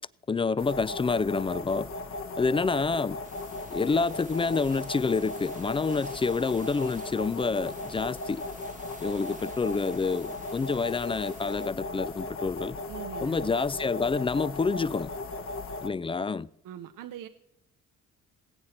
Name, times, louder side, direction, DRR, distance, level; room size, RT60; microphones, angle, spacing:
voice 1, 0.3-1.9 2.4-3.2 3.7-8.4 9.0-12.8 13.2-15.1 15.8-16.5, left 4 dB, 15° left, 20 dB, 0.3 m, -28 dB
sound 1, 0.6-15.9, left 2 dB, 35° left, 1.0 m, -37 dB
sound 2, 3.2-11.7, right 5 dB, 20° right, 0.6 m, -52 dB
voice 2, 12.9-13.6 16.6-17.3, right 11 dB, 60° right, 9 dB, 0.8 m, -41 dB
19.5 x 8.4 x 4.3 m, 0.79 s
hypercardioid pair, 55°, 37 cm